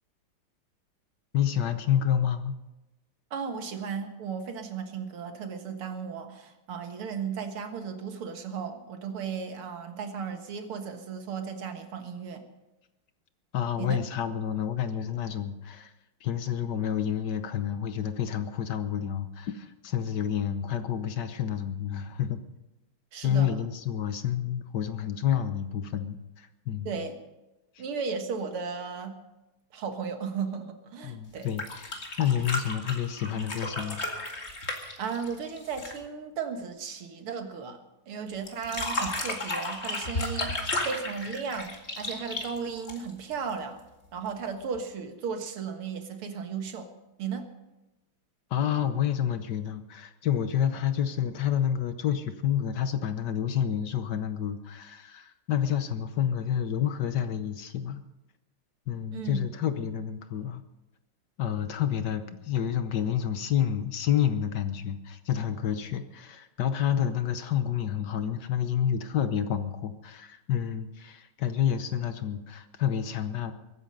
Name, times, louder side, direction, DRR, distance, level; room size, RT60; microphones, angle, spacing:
voice 1, 1.3-2.6 13.5-15.9 16.2-22.4 23.2-26.9 31.0-34.0 48.5-58.0 58.9-60.6 61.4-73.5, left 9 dB, 60° left, 10 dB, 1.3 m, -29 dB
voice 2, 3.3-12.4 13.8-14.0 23.1-23.6 26.9-27.2 27.8-29.2 29.7-31.6 34.8-37.8 38.1-43.8 44.1-46.9 47.2-47.5 59.1-59.4, right 6 dB, 90° right, 6 dB, 2.4 m, -35 dB
sound 1, 31.4-36.0 38.5-43.3 44.7-44.8, left 2 dB, 30° left, 2.2 m, -33 dB
22.5 x 10.0 x 5.4 m, 1.0 s
omnidirectional pair, 2.3 m